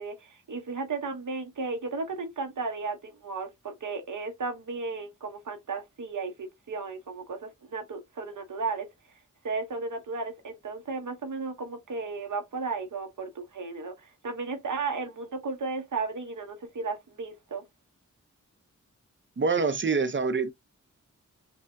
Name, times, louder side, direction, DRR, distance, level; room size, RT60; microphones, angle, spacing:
voice 1, 0.0-8.9 9.4-17.6, right 4 dB, 80° right, 0.9 m, -34 dB
voice 2, 19.4-20.5, right 4 dB, 40° right, 0.7 m, -25 dB
5.5 x 2.3 x 2.6 m
wide cardioid pair, 65°, 30 cm